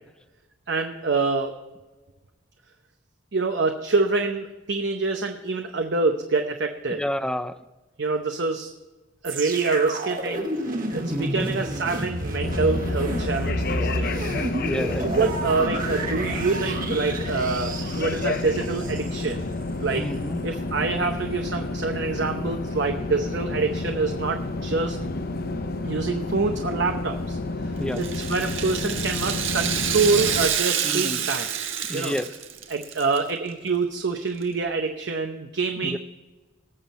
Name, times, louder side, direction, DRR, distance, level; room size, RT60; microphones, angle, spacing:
voice 1, 0.7-1.6 3.3-7.0 8.0-8.7 9.2-10.5 10.9-14.3 15.0-19.4 19.8-20.1 20.4-25.0 25.8-31.5 31.9-32.1 32.7-36.0, right 4 dB, 60° right, 4 dB, 0.8 m, -26 dB
voice 2, 6.9-7.5 11.1-11.5 14.6-15.3 20.0-20.4 27.8-28.0 30.8-31.2 31.9-32.3 35.8-36.0, equal, 5° left, 12 dB, 0.5 m, -29 dB
sound 1, 9.2-19.3 19.9-20.0, right 1 dB, 45° right, 1.7 m, -30 dB
sound 2, 12.4-30.5, left 2 dB, 50° left, 0.7 m, -30 dB
Rattle (instrument), 27.9-33.2 33.5-33.6 34.4-34.5, right 9 dB, 80° right, 1.4 m, -28 dB
19.0 x 7.3 x 4.2 m, 1.2 s
head